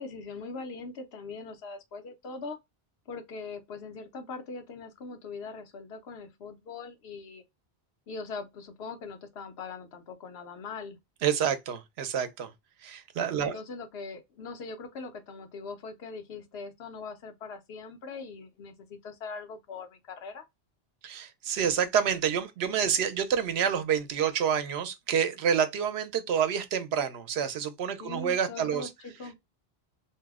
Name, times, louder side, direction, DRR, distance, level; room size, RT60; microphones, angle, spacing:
voice 1, 0.0-2.6 3.1-7.4 8.1-11.0 13.3-20.4 28.0-29.4, left 4 dB, 80° left, 1.0 m, -41 dB
voice 2, 11.2-12.5 12.8-13.6 21.0-28.9, right 8 dB, 85° right, 0.9 m, -28 dB
2.7 x 2.0 x 3.4 m
omnidirectional pair, 1.1 m